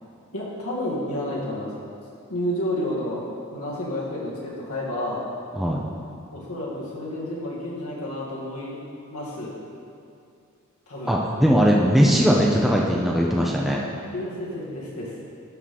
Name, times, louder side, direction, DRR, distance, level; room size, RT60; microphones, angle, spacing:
voice 1, 0.3-1.7 2.3-3.2 3.5-5.2 6.3-8.8 9.1-9.5 10.9-11.1 14.1-15.1, left 1 dB, 85° left, -5 dB, 2.1 m, -30 dB
voice 2, 11.1-13.8, equal, ahead, -3 dB, 0.6 m, -19 dB
11.0 x 3.8 x 5.9 m, 2.5 s
head